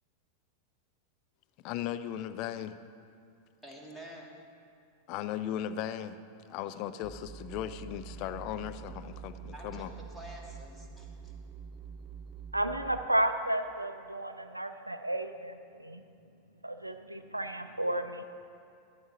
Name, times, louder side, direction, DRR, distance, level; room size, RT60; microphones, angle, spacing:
voice 1, 1.6-2.8 5.1-6.2 6.5-9.9, left 10 dB, 40° left, 12 dB, 0.4 m, -37 dB
voice 2, 3.6-4.4 9.5-11.3, equal, 5° left, -2 dB, 1.5 m, -48 dB
sound 1, 7.0-13.0, right 6 dB, 20° right, 0.6 m, -46 dB
voice 3, 12.5-16.0 16.6-18.2, right 1 dB, 85° right, 8 dB, 0.4 m, -32 dB
12.0 x 11.0 x 2.8 m, 2.5 s
figure-of-eight pair, 90°, 0 cm